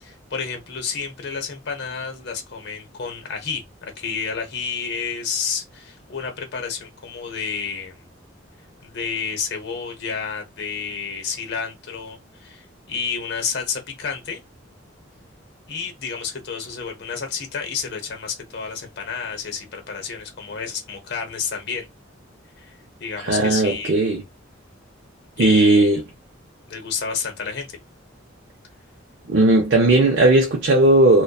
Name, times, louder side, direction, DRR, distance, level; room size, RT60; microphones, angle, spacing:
voice 1, 0.0-3.6 4.0-8.0 8.8-14.4 15.7-21.9 22.6-22.7 23.0-23.9 25.4-25.9 26.7-27.8, left 6 dB, 60° left, 0.8 m, -30 dB
voice 2, 23.2-24.2 25.4-26.0 29.3-31.2, right 2 dB, 60° right, 0.5 m, -16 dB
2.5 x 2.2 x 2.3 m
head